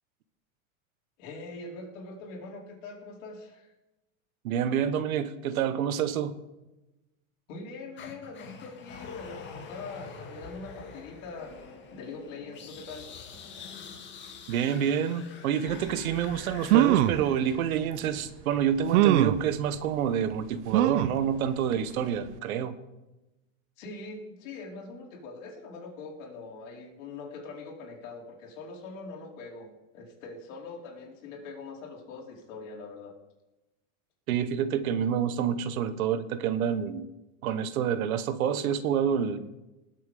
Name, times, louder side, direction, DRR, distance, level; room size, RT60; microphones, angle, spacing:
voice 1, 1.2-3.7 7.5-11.6 11.9-13.1 23.8-29.7 29.9-33.1, left 3 dB, 65° left, -1 dB, 4.4 m, -43 dB
voice 2, 4.4-6.4 14.5-22.8 34.3-37.1 37.4-39.4, right 8 dB, 85° right, 12 dB, 1.3 m, -28 dB
sound 1, 8.0-18.1, left 5 dB, 25° left, 2.0 m, -45 dB
sound 2, 16.2-16.3 16.6-17.2 18.0-18.1 18.9-19.4 20.7-21.2 21.7-21.8 22.1-22.2, right 13 dB, 55° right, 0.6 m, -22 dB
19.5 x 7.6 x 5.1 m, 1.0 s
supercardioid pair, 145°, 41 cm